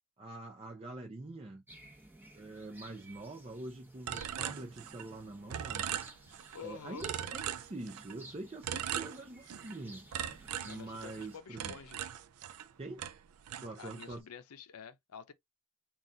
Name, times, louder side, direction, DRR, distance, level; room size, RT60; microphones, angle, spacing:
voice 1, 0.2-1.6 2.3-5.9 6.6-10.1 10.6-11.7 12.8-13.0 13.6-14.2, right 2 dB, 25° right, 0.6 m, -45 dB
sound 1, 1.7-11.4, right 1 dB, 10° right, 1.0 m, -57 dB
sound 2, 4.1-5.2 5.5-6.6 7.0-8.2 8.6-9.8 10.1-12.7 13.0-14.2, right 9 dB, 80° right, 0.4 m, -40 dB
voice 2, 6.5-7.1 10.6-12.0 13.8-15.3, left 6 dB, 90° left, 0.6 m, -48 dB
4.0 x 2.4 x 3.7 m
head